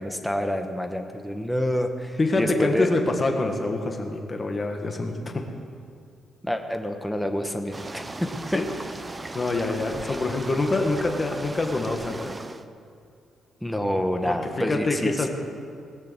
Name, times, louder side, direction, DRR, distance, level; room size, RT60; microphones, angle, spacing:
voice 1, 0.0-2.9 6.4-8.6 10.0-10.2 13.6-15.3, equal, 5° left, 5 dB, 1.2 m, -28 dB
voice 2, 2.2-5.4 8.5-8.7 9.3-12.4 14.2-15.3, left 2 dB, 30° left, 3 dB, 1.7 m, -26 dB
sound 1, 7.7-12.7, right 2 dB, 20° right, 0.6 m, -37 dB
19.0 x 6.8 x 8.1 m, 2.3 s
cardioid pair, 115°, 0 cm